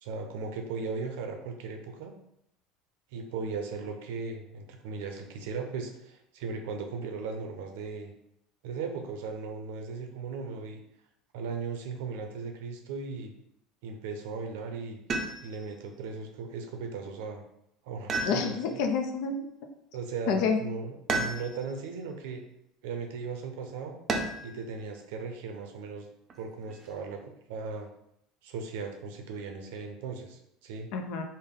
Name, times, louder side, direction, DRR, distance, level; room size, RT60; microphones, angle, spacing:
voice 1, 0.0-2.1 3.1-8.1 8.6-10.8 11.3-13.3 13.8-15.0 15.4-17.4 17.8-18.5 19.9-22.4 22.8-24.0 24.4-26.1 26.4-27.9 28.4-30.9, right 4 dB, 80° right, 4 dB, 0.6 m, -37 dB
sound 1, 15.1-15.7 18.1-18.9 21.1-21.8 24.1-24.6 26.3-26.9, right 3 dB, 35° right, 0.5 m, -33 dB
voice 2, 18.3-19.5 20.3-20.6 30.9-31.2, left 5 dB, 70° left, 5 dB, 0.5 m, -28 dB
3.5 x 2.1 x 3.7 m, 0.77 s
supercardioid pair, 110°, 0 cm